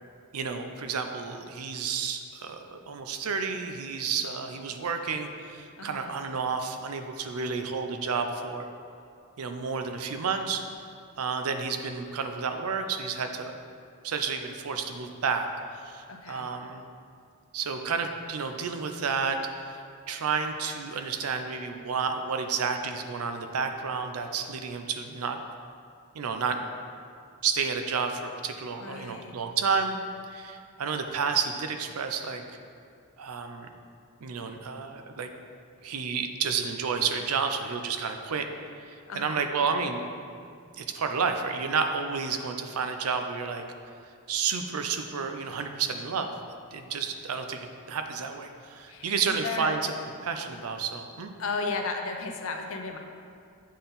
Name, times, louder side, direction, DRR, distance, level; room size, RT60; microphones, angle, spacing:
voice 1, 0.3-8.7 9.4-10.6 11.2-13.6 14.0-16.9 17.5-19.8 20.1-25.4 26.1-26.6 27.4-30.0 30.3-32.4 33.2-33.7 34.2-35.3 35.8-38.5 38.8-40.0 40.8-43.6 44.3-46.3 46.7-49.9 50.2-51.4, right 5 dB, 85° right, 6 dB, 0.5 m, -31 dB
voice 2, 5.8-6.1 16.1-16.5 28.8-29.3 39.1-39.4 48.9-49.8 51.4-53.0, left 4 dB, 65° left, 4 dB, 0.6 m, -34 dB
8.3 x 3.9 x 4.0 m, 2.3 s
head